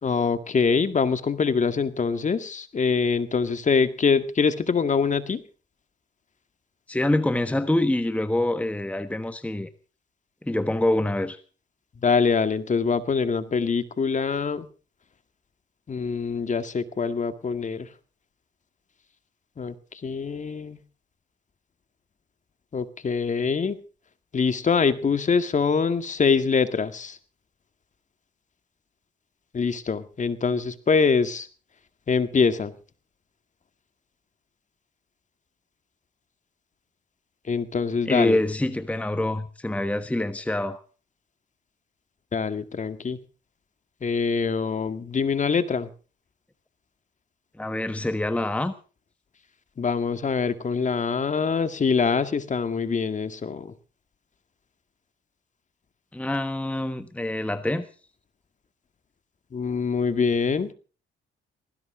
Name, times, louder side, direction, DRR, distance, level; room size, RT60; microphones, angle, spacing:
voice 1, 0.0-5.4 12.0-14.7 15.9-17.9 19.6-19.8 20.0-20.8 22.7-23.8 24.3-27.2 29.5-31.5 32.1-32.7 37.5-38.4 42.3-43.2 44.0-45.9 49.8-53.7 59.5-60.7, left 5 dB, 40° left, 1.9 m, -24 dB
voice 2, 6.9-9.7 10.4-11.4 38.0-40.8 47.6-48.7 56.1-57.9, left 1 dB, 5° left, 1.3 m, -25 dB
19.5 x 16.5 x 3.8 m
cardioid pair, 90°, 20 cm